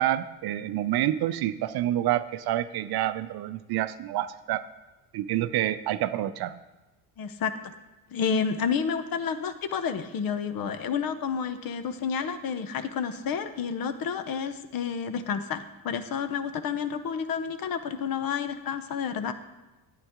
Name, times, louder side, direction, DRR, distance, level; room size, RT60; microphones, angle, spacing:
voice 1, 0.0-4.6 5.1-6.6, right 13 dB, 60° right, 13 dB, 0.6 m, -28 dB
voice 2, 7.2-7.7 8.1-19.3, left 6 dB, 55° left, 11 dB, 0.8 m, -30 dB
9.4 x 9.0 x 3.6 m, 1.1 s
supercardioid pair, 75°, 43 cm